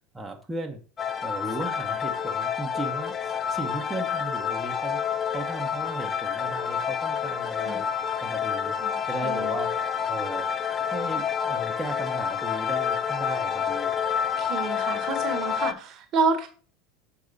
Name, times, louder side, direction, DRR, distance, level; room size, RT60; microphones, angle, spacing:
voice 1, 0.1-0.8 1.2-5.0 5.3-7.9 8.2-8.7 9.1-13.9, right 2 dB, 10° right, 2 dB, 1.3 m, -36 dB
sound 1, 1.0-15.7, left 7 dB, 30° left, 0.6 m, -28 dB
voice 2, 8.8-9.5 14.4-16.5, right 4 dB, 45° right, 8 dB, 1.3 m, -29 dB
6.7 x 4.8 x 4.1 m, 0.37 s
hypercardioid pair, 80°, 0 cm